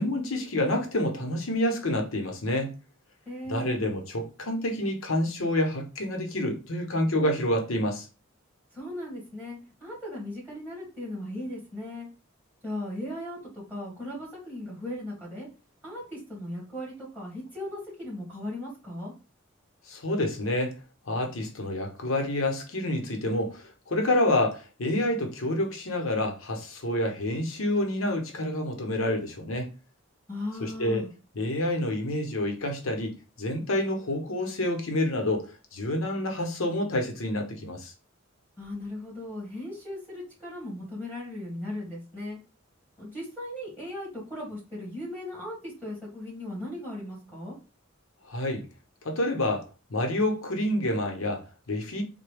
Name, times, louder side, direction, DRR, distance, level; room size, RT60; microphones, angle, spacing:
voice 1, 0.0-2.7 3.4-8.1 19.9-20.7 21.1-29.7 30.6-31.0 31.3-35.5 35.7-37.9 48.3-48.6 49.0-52.0, left 1 dB, 85° left, 0.9 m, -28 dB
voice 2, 3.3-3.8 8.7-12.1 12.6-15.5 15.8-19.1 30.3-31.1 38.6-42.4 43.0-47.6, left 1 dB, 10° right, 1.9 m, -37 dB
3.8 x 2.2 x 3.4 m
head